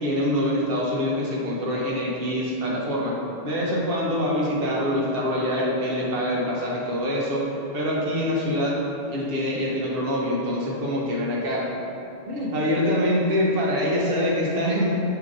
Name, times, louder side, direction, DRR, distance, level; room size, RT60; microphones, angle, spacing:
voice 1, 0.0-7.4 7.7-8.8 9.1-11.8 12.3-14.9, left 1 dB, 65° right, -3 dB, 0.9 m, -25 dB
6.6 x 2.9 x 2.5 m, 2.8 s
omnidirectional pair, 1.1 m